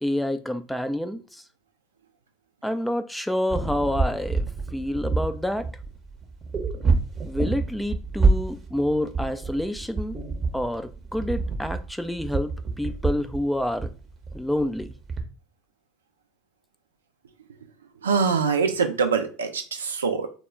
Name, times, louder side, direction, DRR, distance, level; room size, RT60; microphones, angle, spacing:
voice 1, 0.0-1.4 2.6-5.7 7.3-10.2 10.5-13.9 14.3-14.9, left 1 dB, 5° left, 0.3 m, -28 dB
sound 1, 3.5-15.2, right 3 dB, 30° right, 0.7 m, -27 dB
voice 2, 18.0-20.3, right 5 dB, 85° right, 0.4 m, -24 dB
2.1 x 2.1 x 3.5 m
hypercardioid pair, 75°, 0 cm